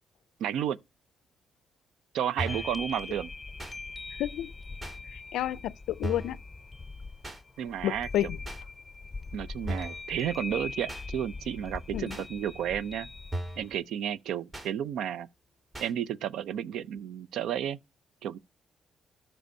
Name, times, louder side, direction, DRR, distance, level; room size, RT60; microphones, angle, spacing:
voice 1, 0.4-0.8 2.1-3.3 7.6-8.1 9.3-13.1 13.6-15.3 15.8-17.8 18.2-18.4, right 9 dB, 80° right, 0.5 m, -32 dB
sound 1, 2.4-2.7 3.6-3.8 4.8-5.0 6.0-6.4 7.2-7.4 8.4-8.6 9.7-10.0 10.9-11.1 12.1-12.3 13.3-13.7 14.5-14.7 15.7-15.9, right 1 dB, 30° right, 3.2 m, -36 dB
sound 2, 2.5-13.8, left 3 dB, 20° left, 0.6 m, -42 dB
voice 2, 4.2-4.5 5.1-6.4 7.8-8.4 11.9-12.2, left 13 dB, 85° left, 0.3 m, -30 dB
13.5 x 4.5 x 2.7 m
cardioid pair, 90°, 0 cm